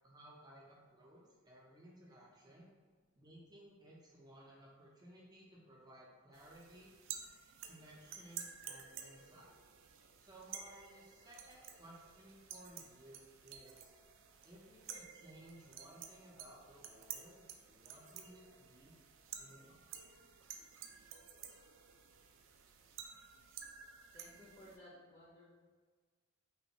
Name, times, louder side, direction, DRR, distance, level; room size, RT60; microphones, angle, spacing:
voice 1, 0.0-2.7 3.2-6.9 7.7-9.5 10.2-13.9 14.4-18.9 19.4-19.8, right 1 dB, 20° right, -5 dB, 0.6 m, -59 dB
sound 1, 6.3-24.8, right 8 dB, 60° right, 0.3 m, -52 dB
voice 2, 24.1-25.5, left 1 dB, 20° left, -8 dB, 0.7 m, -58 dB
3.4 x 2.5 x 2.9 m, 1.5 s
head